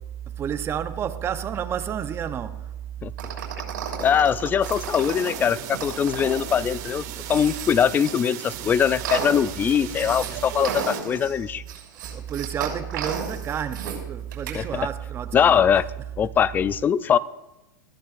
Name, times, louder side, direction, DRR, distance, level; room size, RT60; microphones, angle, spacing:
voice 1, 0.4-2.7 9.8-9.9 12.1-15.6, right 9 dB, 25° right, 0.8 m, -30 dB
voice 2, 3.0-3.3 4.0-7.0 7.3-11.6 14.5-14.7 15.3-15.8 16.2-17.2, left 8 dB, 20° left, 0.3 m, -22 dB
sound 1, 3.2-8.1 8.6-10.3 10.6-14.0 14.3-14.6, right 7 dB, 90° right, 6.0 m, -33 dB
sound 2, 4.6-11.0, right 11 dB, 60° right, 2.0 m, -37 dB
21.0 x 14.5 x 2.5 m
supercardioid pair, 140°, 11 cm